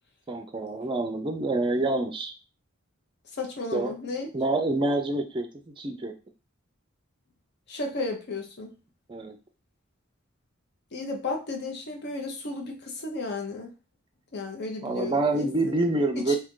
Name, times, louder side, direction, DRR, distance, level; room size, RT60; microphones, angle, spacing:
voice 1, 0.3-2.3 3.7-3.9 4.3-6.1 9.1-9.4 14.8-16.4, right 2 dB, 25° right, 6 dB, 0.4 m, -27 dB
voice 2, 3.3-4.3 7.7-8.7 10.9-13.7 14.3-15.7 16.1-16.4, left 3 dB, 55° left, 3 dB, 0.7 m, -34 dB
2.8 x 2.5 x 3.7 m, 0.30 s
head